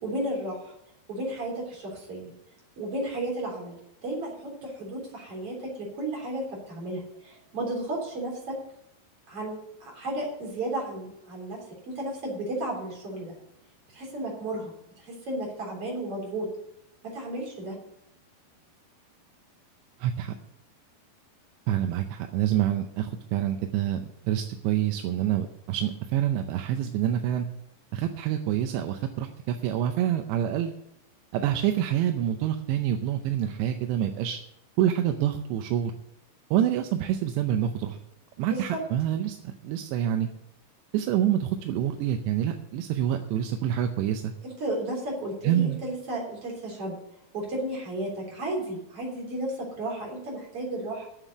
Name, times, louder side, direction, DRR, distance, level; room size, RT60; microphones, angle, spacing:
voice 1, 0.0-0.7 1.1-2.3 2.8-8.6 9.3-13.4 13.9-16.5 17.0-17.8 38.5-38.6 44.4-47.0 47.3-51.1, right 1 dB, 35° right, -1 dB, 4.0 m, -33 dB
voice 2, 20.0-20.3 21.7-27.5 27.9-30.7 31.3-34.4 34.8-35.9 36.5-38.0 38.4-40.3 40.9-44.3 45.4-45.8, right 11 dB, 85° right, 6 dB, 2.9 m, -27 dB
9.2 x 7.5 x 8.0 m, 0.79 s
omnidirectional pair, 5.0 m